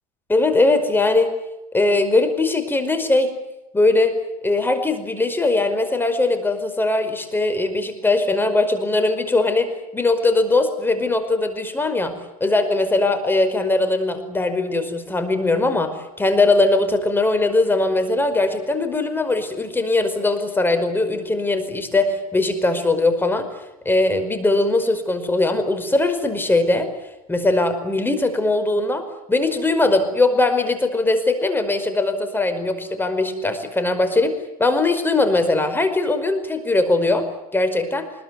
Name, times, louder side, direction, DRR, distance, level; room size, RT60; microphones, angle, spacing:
voice 1, 0.3-1.3 1.7-3.3 3.7-4.1 4.4-12.1 12.4-23.5 23.9-26.9 27.3-34.4 34.6-37.3 37.5-38.1, left 2 dB, 10° left, 9 dB, 5.2 m, -20 dB
25.0 x 21.5 x 9.5 m, 0.91 s
hypercardioid pair, 105°, 18 cm